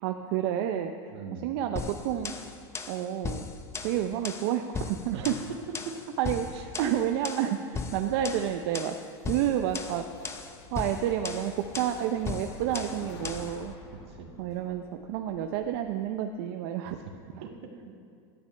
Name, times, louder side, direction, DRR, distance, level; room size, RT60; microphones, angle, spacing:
voice 1, 0.0-1.1 1.4-2.6 2.9-3.5 3.8-5.4 6.2-9.0 9.3-10.0 10.7-13.7 14.4-17.0 17.3-17.4, right 10 dB, 60° right, 5 dB, 0.7 m, -30 dB
voice 2, 1.1-1.6 5.1-5.3 5.8-6.0 6.5-6.6 12.7-12.8 13.2-13.3 13.9-14.3 17.4-17.9, right 6 dB, 80° right, 1 dB, 2.0 m, -42 dB
sound 1, 1.8-13.6, left 5 dB, 20° left, 0.8 m, -38 dB
sound 2, 8.9-16.0, left 4 dB, 75° left, 1.9 m, -50 dB
17.0 x 12.0 x 3.4 m, 2.2 s
supercardioid pair, 130°, 14 cm